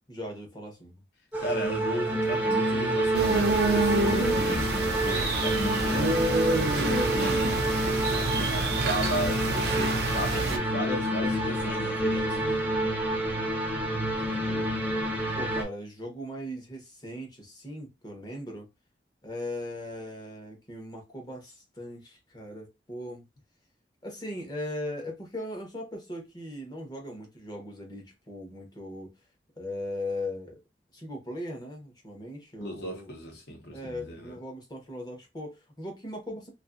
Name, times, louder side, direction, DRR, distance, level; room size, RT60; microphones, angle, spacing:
voice 1, 0.1-1.0 14.1-14.7 15.3-18.7 19.2-23.2 24.0-29.1 29.6-30.6 30.9-33.1 33.7-36.5, left 1 dB, 25° left, 0.8 m, -39 dB
sound 1, 1.3-15.6, right 1 dB, 10° right, 0.5 m, -28 dB
voice 2, 1.4-12.7 32.6-34.4, equal, 65° left, 1.0 m, -35 dB
sound 2, 3.1-10.6, right 2 dB, 65° right, 0.5 m, -27 dB
2.6 x 2.5 x 2.4 m
head